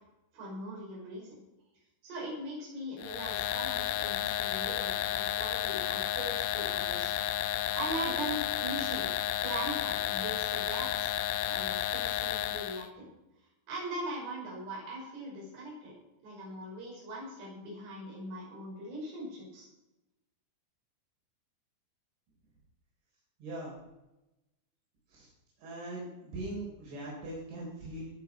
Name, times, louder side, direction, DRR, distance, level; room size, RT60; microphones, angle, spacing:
voice 1, 0.3-1.4 2.0-7.1 7.7-9.1 9.4-13.1 13.7-15.9 16.2-19.7, right 1 dB, 60° right, -4 dB, 7.8 m, -40 dB
sound 1, 3.0-12.9, left 12 dB, 90° left, 3.2 m, -32 dB
voice 2, 23.4-23.7 25.1-25.3 25.6-28.1, right 1 dB, 80° right, -5 dB, 6.4 m, -40 dB
20.0 x 7.4 x 5.9 m, 0.96 s
omnidirectional pair, 5.3 m